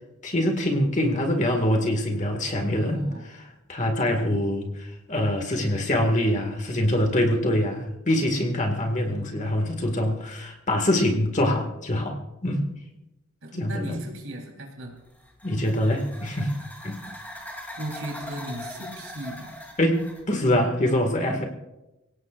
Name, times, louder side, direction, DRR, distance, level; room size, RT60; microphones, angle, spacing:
voice 1, 0.2-3.1 3.7-12.1 12.4-12.7 13.6-14.0 15.4-16.5 16.8-17.0 19.8-21.5, left 1 dB, 35° left, 3 dB, 1.9 m, -24 dB
voice 2, 2.7-3.3 9.1-9.7 13.4-15.0 17.8-19.6, right 1 dB, 65° right, 0 dB, 3.8 m, -37 dB
sound 1, 15.0-20.3, left 1 dB, 10° left, 3.0 m, -41 dB
26.5 x 17.0 x 2.5 m, 0.97 s
head